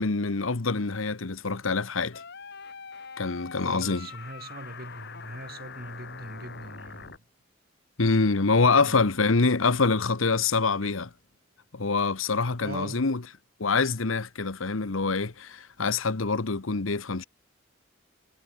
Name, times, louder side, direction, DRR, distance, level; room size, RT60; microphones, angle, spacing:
voice 1, 0.0-2.2 3.2-4.1 8.0-11.1 11.7-13.2 13.6-17.2, left 4 dB, 80° left, 1.1 m, -25 dB
sound 1, 2.1-7.2, left 5 dB, 55° left, 2.0 m, -43 dB
voice 2, 3.6-7.1 8.7-9.0 12.6-13.1, right 1 dB, 50° right, 4.7 m, -41 dB
head